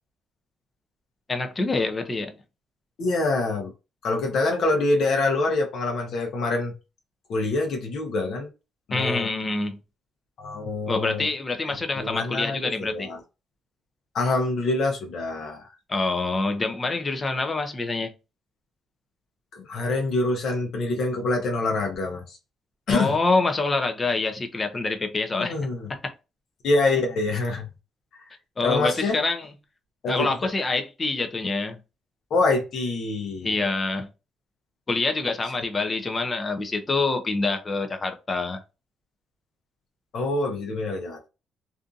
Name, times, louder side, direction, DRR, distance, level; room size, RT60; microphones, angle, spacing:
voice 1, 1.3-2.3 8.9-9.8 10.9-13.1 15.9-18.1 22.9-25.6 25.9-26.1 28.6-29.5 30.1-31.8 33.4-34.1 34.9-38.6, left 3 dB, 25° left, 0.5 m, -26 dB
voice 2, 3.0-3.7 4.0-6.7 7.3-8.5 8.9-9.3 10.4-11.3 12.0-13.2 14.1-15.6 19.5-22.2 22.9-23.1 25.3-25.9 26.6-27.7 28.6-29.1 30.0-30.3 32.3-33.6 40.1-41.2, left 2 dB, 60° left, 0.7 m, -25 dB
2.6 x 2.5 x 2.4 m
cardioid pair, 130°, 0 cm